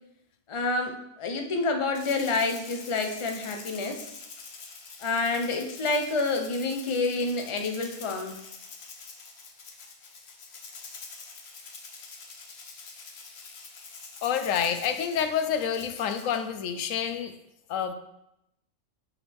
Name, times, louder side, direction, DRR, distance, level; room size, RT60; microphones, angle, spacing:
voice 1, 0.5-4.1 5.0-8.4, left 3 dB, 35° left, 4 dB, 0.5 m, -28 dB
Rattle (instrument), 1.9-16.5, left 4 dB, 55° left, 1.1 m, -46 dB
voice 2, 14.2-17.3 17.7-17.9, left 8 dB, 85° left, 9 dB, 1.0 m, -28 dB
6.3 x 5.8 x 3.5 m, 0.83 s
omnidirectional pair, 1.3 m